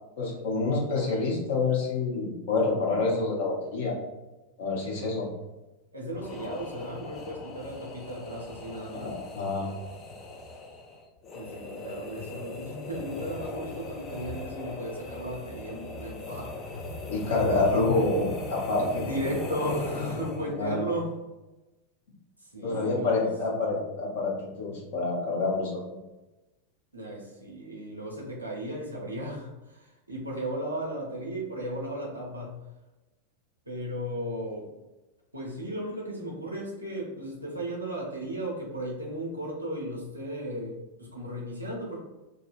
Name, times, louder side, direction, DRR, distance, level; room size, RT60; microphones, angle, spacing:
voice 1, 0.2-4.0 4.6-5.3 8.9-9.7 17.1-19.0 20.6-20.8 22.6-26.0, left 3 dB, 55° left, -2 dB, 0.8 m, -27 dB
voice 2, 5.9-9.1 11.3-17.0 19.0-21.1 22.4-23.3 26.9-32.6 33.7-34.7 35.3-42.0, right 1 dB, 85° right, -4 dB, 0.5 m, -35 dB
sound 1, 6.1-20.7, left 2 dB, 25° left, 0.4 m, -39 dB
2.6 x 2.1 x 2.4 m, 1.1 s
figure-of-eight pair, 90°, 0 cm